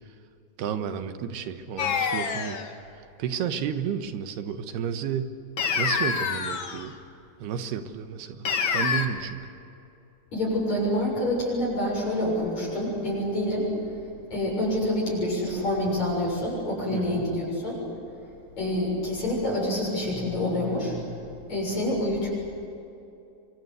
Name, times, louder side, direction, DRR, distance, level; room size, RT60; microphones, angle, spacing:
voice 1, 0.6-2.6 3.2-5.3 5.8-6.9 7.4-8.5 8.7-9.4 16.9-17.2, right 8 dB, 90° right, 8 dB, 3.4 m, -31 dB
sound 1, 1.8-2.7 5.6-6.9 8.4-9.1, left 6 dB, 60° left, 1.3 m, -26 dB
voice 2, 10.3-13.7 14.3-17.8 18.6-21.2 21.5-22.3, left 1 dB, 45° left, -4 dB, 8.2 m, -27 dB
28.0 x 24.0 x 8.2 m, 2.8 s
omnidirectional pair, 4.5 m